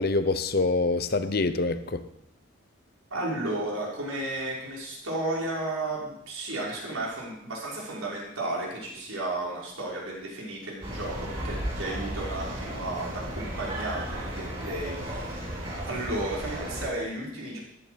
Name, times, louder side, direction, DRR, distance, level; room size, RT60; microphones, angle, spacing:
voice 1, 0.0-2.0, left 3 dB, 50° left, 0.8 m, -25 dB
voice 2, 3.1-15.5 15.8-17.6, right 2 dB, 90° right, 5.9 m, -33 dB
sound 1, 10.8-16.9, right 1 dB, 25° right, 5.1 m, -34 dB
15.5 x 11.0 x 5.2 m
head